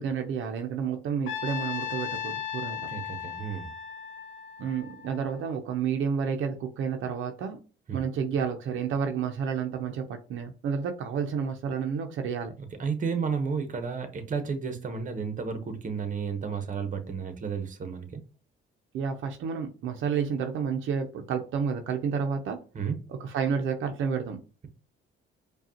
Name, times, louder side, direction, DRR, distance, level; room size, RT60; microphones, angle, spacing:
voice 1, 0.0-2.8 4.6-7.6 7.9-12.5 18.9-22.6 23.1-24.4, right 6 dB, 80° right, 0.6 m, -30 dB
Trumpet, 1.3-5.5, left 9 dB, 75° left, 0.8 m, -36 dB
voice 2, 2.7-3.7 7.9-8.0 12.8-18.2 22.7-23.0, right 5 dB, 40° right, 0.9 m, -32 dB
4.9 x 2.3 x 2.8 m
cardioid pair, 90°, 20 cm